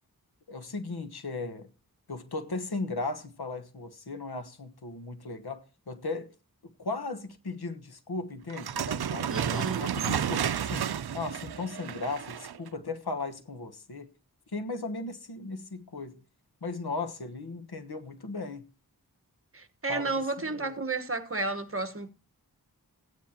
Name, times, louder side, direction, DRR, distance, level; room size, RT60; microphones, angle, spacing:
voice 1, 0.5-1.7 2.1-6.3 6.6-10.9 11.1-14.1 14.5-16.2 16.6-18.7 19.9-20.7, left 3 dB, 85° left, 1.3 m, -37 dB
sound 1, 8.5-12.7, right 9 dB, 85° right, 0.5 m, -31 dB
voice 2, 9.3-9.8 19.5-22.1, right 3 dB, 35° right, 1.3 m, -32 dB
15.5 x 9.7 x 2.8 m
wide cardioid pair, 65°, 37 cm